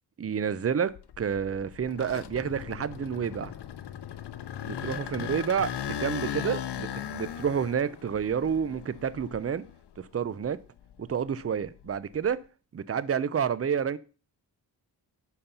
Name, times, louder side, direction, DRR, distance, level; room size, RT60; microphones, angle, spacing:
voice 1, 0.2-3.5 4.6-9.6 10.0-10.6 11.0-12.4 12.7-14.0, right 7 dB, 35° right, 0.6 m, -29 dB
sound 1, 0.9-10.0 10.4-12.3, left 10 dB, 80° left, 0.7 m, -38 dB
10.5 x 4.3 x 5.6 m
cardioid pair, 85°, 41 cm